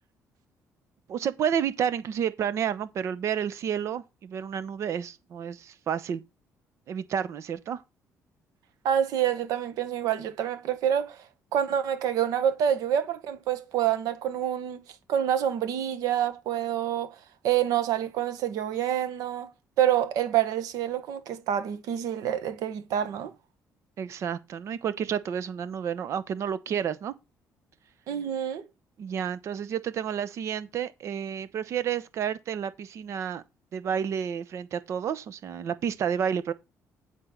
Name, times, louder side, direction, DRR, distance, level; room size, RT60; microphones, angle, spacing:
voice 1, 1.1-6.2 6.9-7.8 24.0-27.1 29.0-33.4 33.7-36.5, right 8 dB, 50° right, 0.9 m, -30 dB
voice 2, 8.8-11.2 11.5-14.8 15.1-17.1 17.4-19.5 19.8-23.3 28.1-28.7, right 10 dB, 90° right, 1.5 m, -27 dB
10.0 x 4.6 x 5.8 m
cardioid pair, 160°, 6 cm